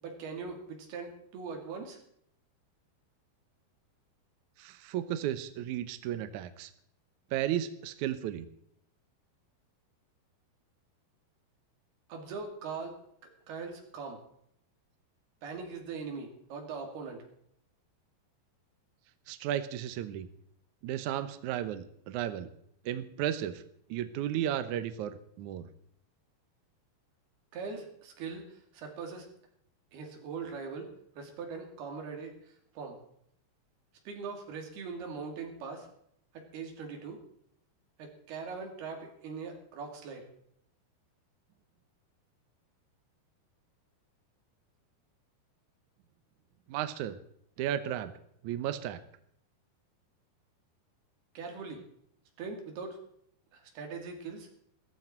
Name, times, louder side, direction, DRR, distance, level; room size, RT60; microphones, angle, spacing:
voice 1, 0.0-2.0 12.1-13.0 13.5-14.2 15.4-17.2 27.5-29.3 29.9-30.9 31.2-32.3 32.7-33.0 34.1-35.9 36.3-37.2 38.0-40.3 51.3-51.8 52.4-53.0 53.5-54.5, right 5 dB, 70° right, 2 dB, 4.4 m, -41 dB
voice 2, 4.6-6.7 7.3-8.5 19.3-20.3 20.8-22.5 22.8-23.6 23.9-25.7 46.7-47.2 47.6-48.1 48.4-49.0, right 11 dB, 85° right, 11 dB, 1.7 m, -34 dB
16.0 x 14.5 x 4.4 m, 0.70 s
omnidirectional pair, 4.8 m